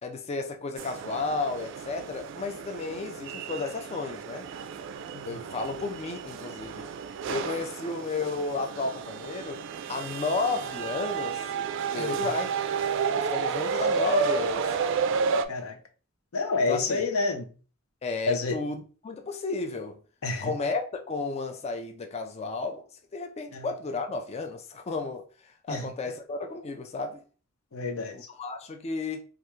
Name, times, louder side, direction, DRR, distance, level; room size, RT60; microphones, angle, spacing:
voice 1, 0.0-4.5 5.3-6.9 7.3-9.6 9.9-11.4 11.9-12.5 13.1-14.7 16.7-17.0 18.0-20.0 20.4-22.8 23.1-27.2 28.1-29.2, left 3 dB, 30° left, 0.3 m, -33 dB
sound 1, 0.8-15.5, right 6 dB, 60° right, 0.3 m, -31 dB
voice 2, 16.3-17.5 18.3-18.6 20.2-20.5 23.5-23.7 25.7-25.9 27.7-28.2, left 3 dB, 90° left, 0.6 m, -29 dB
3.3 x 2.4 x 3.0 m
head